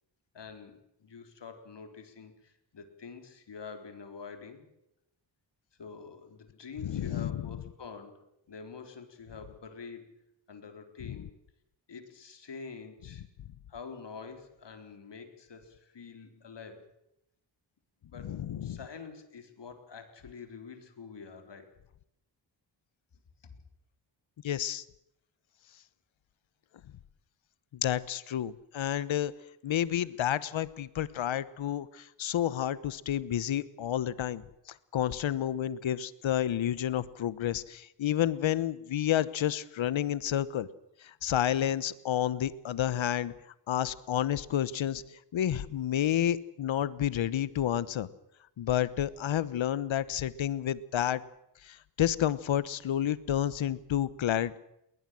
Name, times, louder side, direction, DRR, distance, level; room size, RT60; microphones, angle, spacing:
voice 1, 0.3-4.7 5.8-10.1 10.5-11.3 11.9-13.2 13.7-16.9 18.0-18.3 18.6-21.7, left 5 dB, 65° left, 7 dB, 4.2 m, -46 dB
voice 2, 6.8-7.4 18.2-18.8 24.4-24.8 27.7-29.3 29.6-34.4 34.9-40.7 41.0-43.3 43.7-45.0 45.3-48.1 48.6-51.2 51.6-54.6, left 11 dB, 85° left, 17 dB, 1.1 m, -30 dB
20.5 x 20.5 x 7.7 m, 0.81 s
cardioid pair, 80°, 46 cm